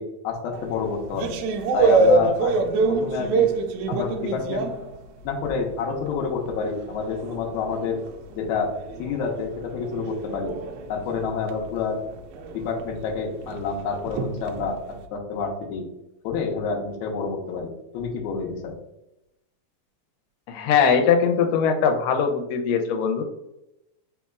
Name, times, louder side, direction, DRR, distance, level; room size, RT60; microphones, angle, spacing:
voice 1, 0.0-1.4 1.7-3.5 3.9-4.7 5.2-8.0 8.3-10.5 10.9-12.0 12.5-14.8 15.1-15.9 16.2-18.8, left 5 dB, 75° left, 0 dB, 1.9 m, -28 dB
sound 1, 0.5-5.7 6.1-15.0, right 3 dB, 85° right, 1.7 m, -26 dB
voice 2, 20.5-23.2, left 6 dB, 90° left, 4 dB, 2.2 m, -21 dB
4.4 x 4.1 x 2.3 m, 0.87 s
omnidirectional pair, 3.8 m